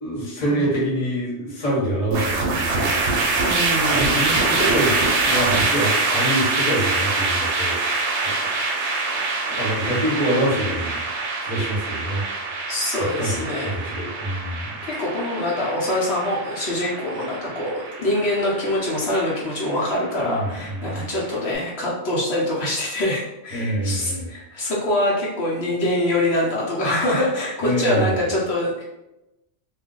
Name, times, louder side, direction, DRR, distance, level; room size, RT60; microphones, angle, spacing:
voice 1, 0.0-3.4 3.9-4.9 5.2-8.5 9.1-11.0 11.4-12.2 12.9-14.8 20.2-21.1 23.5-24.3 27.6-28.2, right 1 dB, 35° left, -4 dB, 0.9 m, -26 dB
sound 1, 2.1-21.3, right 3 dB, 75° right, 0.9 m, -25 dB
voice 2, 3.4-4.2 12.7-13.7 14.8-28.8, left 1 dB, 65° left, -6 dB, 0.9 m, -24 dB
2.4 x 2.2 x 3.7 m, 0.95 s
omnidirectional pair, 1.2 m